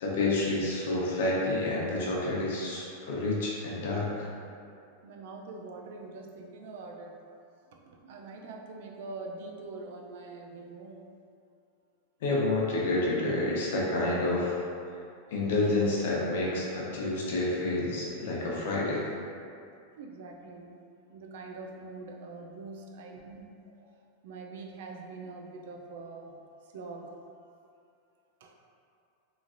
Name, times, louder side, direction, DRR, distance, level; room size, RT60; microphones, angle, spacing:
voice 1, 0.0-4.3 12.2-14.6 15.3-19.1, left 2 dB, 65° left, -4 dB, 0.7 m, -29 dB
voice 2, 5.0-7.2 7.7-11.1 19.9-20.7 21.1-23.9 24.2-26.3 26.7-27.1 28.4-28.5, right 3 dB, 60° right, 1 dB, 0.3 m, -44 dB
3.1 x 2.4 x 2.5 m, 2.4 s
supercardioid pair, 170°, 0 cm